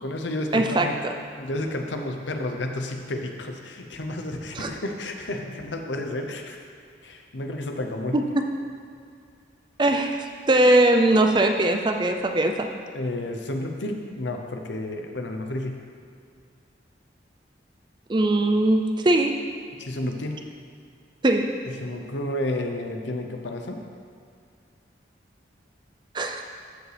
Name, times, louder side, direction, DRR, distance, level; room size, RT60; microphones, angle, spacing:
voice 1, 0.0-0.9 1.4-6.6 7.0-8.2 12.9-15.8 19.8-20.4 21.6-23.8, left 1 dB, 80° left, 4 dB, 0.8 m, -31 dB
voice 2, 0.5-0.9 4.6-4.7 8.1-8.4 9.8-10.2 10.5-12.7 18.1-19.3 21.2-21.5 26.1-26.4, right 1 dB, 25° right, 4 dB, 0.4 m, -20 dB
14.0 x 5.0 x 3.4 m, 2.3 s
head